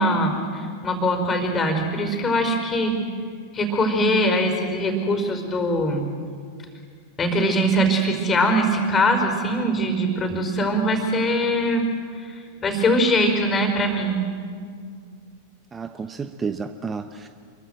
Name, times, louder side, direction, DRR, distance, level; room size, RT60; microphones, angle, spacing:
voice 1, 0.0-3.0 3.5-6.0 7.2-11.9 12.2-14.2, equal, 20° left, 6 dB, 4.9 m, -22 dB
voice 2, 15.7-17.3, right 5 dB, 15° right, 9 dB, 1.1 m, -31 dB
29.0 x 23.0 x 8.0 m, 2.1 s
figure-of-eight pair, 90°, 0 cm